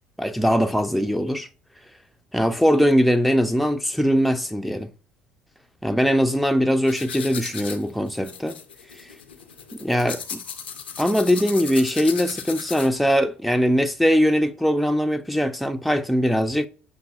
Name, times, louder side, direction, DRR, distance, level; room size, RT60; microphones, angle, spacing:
voice 1, 0.2-1.5 2.3-4.9 5.8-8.5 9.7-10.4 11.0-16.7, equal, ahead, 0.4 m, -21 dB
sound 1, 6.9-13.1, left 7 dB, 90° left, 0.5 m, -36 dB
6.8 x 2.6 x 2.2 m
hypercardioid pair, 60°, 5 cm